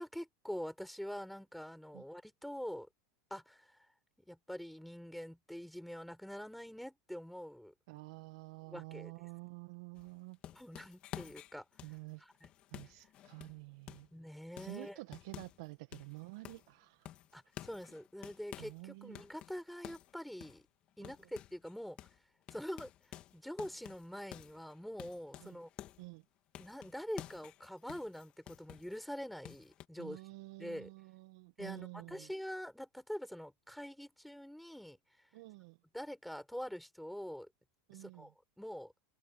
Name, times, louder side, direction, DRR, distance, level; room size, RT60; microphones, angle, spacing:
voice 1, 0.0-2.9 3.3-3.9 4.3-7.7 8.7-9.1 10.5-11.7 12.2-12.5 14.1-15.0 17.3-20.6 21.0-22.0 22.5-25.7 26.6-30.2 30.6-30.9 31.6-35.0 35.9-37.5 37.9-38.9, equal, ahead, 7.0 m, -45 dB
voice 2, 7.9-10.4 11.8-12.2 12.7-14.1 14.6-17.1 18.6-19.2 21.0-21.1 25.4-25.6 26.0-26.2 30.0-32.3 35.3-35.8 37.9-38.3, right 25 dB, 65° right, 1.5 m, -49 dB
sound 1, 10.0-14.2 14.6-15.7 15.9-16.7 17.1-18.8 19.1-21.7 22.0-22.2 22.5-26.1 26.5-29.0 29.4-29.9, left 13 dB, 45° left, 3.2 m, -51 dB
hypercardioid pair, 100°, 3 cm